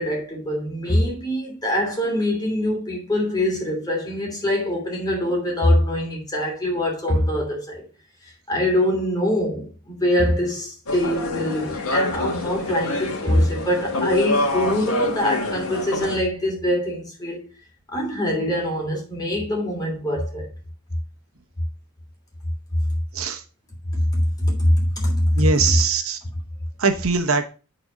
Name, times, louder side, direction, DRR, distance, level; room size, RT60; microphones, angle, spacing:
voice 1, 0.0-7.8 8.5-17.5 17.9-20.5 24.1-25.5, left 1 dB, 15° left, 3.0 m, -23 dB
sound 1, 10.9-16.2, left 2 dB, 75° left, 1.8 m, -26 dB
voice 2, 25.4-26.2 26.8-27.4, right 4 dB, 70° right, 1.0 m, -21 dB
8.7 x 4.2 x 5.2 m
head